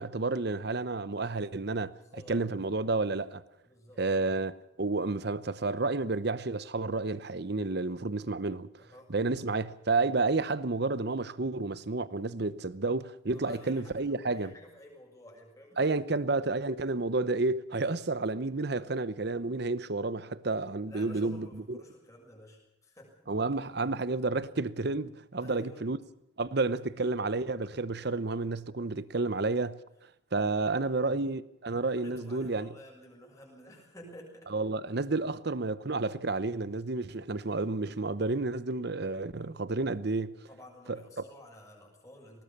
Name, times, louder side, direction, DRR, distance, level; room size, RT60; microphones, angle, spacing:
voice 1, 0.0-2.0 2.3-3.4 4.0-8.7 9.1-14.5 15.8-21.8 23.3-26.0 26.4-29.8 30.3-32.7 34.5-40.4 40.9-41.0, right 3 dB, 55° right, 0.9 m, -30 dB
voice 2, 2.0-2.4 3.6-4.4 8.8-9.2 13.3-16.0 16.5-16.8 20.8-23.1 25.4-25.9 30.5-31.3 31.8-34.5 40.5-42.4, left 1 dB, 15° left, 6.7 m, -52 dB
20.0 x 18.5 x 7.3 m
head